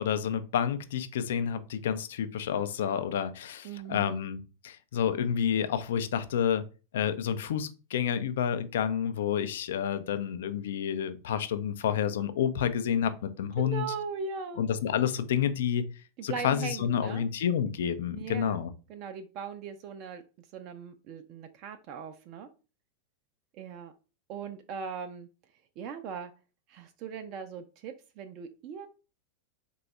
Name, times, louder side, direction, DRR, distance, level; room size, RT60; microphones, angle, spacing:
voice 1, 0.0-6.6 6.9-14.0 14.5-15.8 16.2-18.7, left 8 dB, 60° left, 11 dB, 0.4 m, -29 dB
voice 2, 3.6-4.2 13.6-14.6 16.2-17.2 18.1-18.6 18.9-22.5 23.5-23.9 24.3-25.3 25.8-26.3 26.7-28.9, right 6 dB, 40° right, 7 dB, 0.4 m, -39 dB
4.0 x 2.2 x 3.1 m, 0.33 s
figure-of-eight pair, 90°, 0 cm